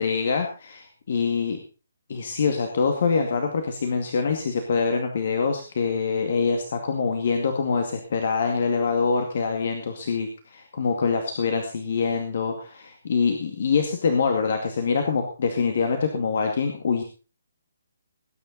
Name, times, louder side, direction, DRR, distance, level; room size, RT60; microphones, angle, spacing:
voice 1, 0.0-1.6 2.1-17.0, left 5 dB, 50° left, 4 dB, 2.2 m, -25 dB
19.0 x 9.7 x 4.1 m, 0.35 s
figure-of-eight pair, 135°, 0 cm